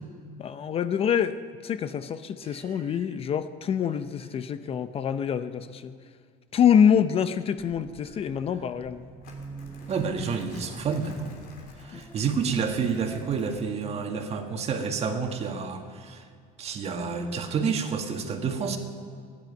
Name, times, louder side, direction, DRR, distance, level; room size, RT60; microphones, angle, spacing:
voice 1, 0.4-1.3 1.6-5.9 6.5-9.1, left 8 dB, 35° left, 12 dB, 0.6 m, -25 dB
voice 2, 2.4-2.8 9.9-11.3 11.8-16.3 16.6-18.8, right 5 dB, 40° right, 5 dB, 1.7 m, -29 dB
sound 1, 7.6-13.7, right 3 dB, 15° right, 0.9 m, -45 dB
Crumpling crinkling, 9.2-14.1, left 3 dB, 60° left, 3.4 m, -52 dB
14.0 x 10.5 x 9.2 m, 2.1 s
cardioid pair, 120°, 17 cm